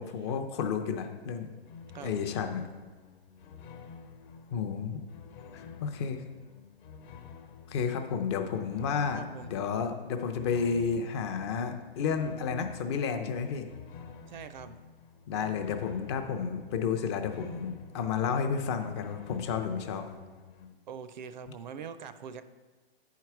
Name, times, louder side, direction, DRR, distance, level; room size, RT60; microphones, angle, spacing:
voice 1, 0.0-1.5 2.0-2.6 4.5-5.0 5.5-6.2 7.7-9.2 9.5-13.7 15.3-20.0, left 6 dB, 25° left, 6 dB, 0.5 m, -31 dB
sound 1, 1.4-20.7, left 6 dB, 50° left, 1.1 m, -49 dB
voice 2, 9.1-9.5 14.3-14.8 20.0-20.1 20.9-22.4, right 7 dB, 45° right, 12 dB, 0.5 m, -43 dB
10.5 x 4.7 x 4.7 m, 1.3 s
hypercardioid pair, 145°, 31 cm